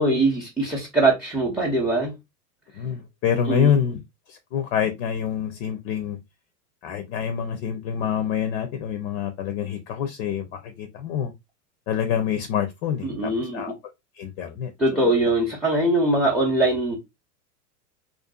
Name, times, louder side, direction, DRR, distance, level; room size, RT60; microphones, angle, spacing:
voice 1, 0.0-2.1 3.5-3.7 13.0-13.6 14.8-17.0, right 2 dB, ahead, 0.6 m, -22 dB
voice 2, 2.7-4.0 4.3-6.2 6.8-11.3 11.9-13.7 14.2-14.7, left 8 dB, 50° left, 0.6 m, -26 dB
2.5 x 2.3 x 2.3 m
hypercardioid pair, 95°, 46 cm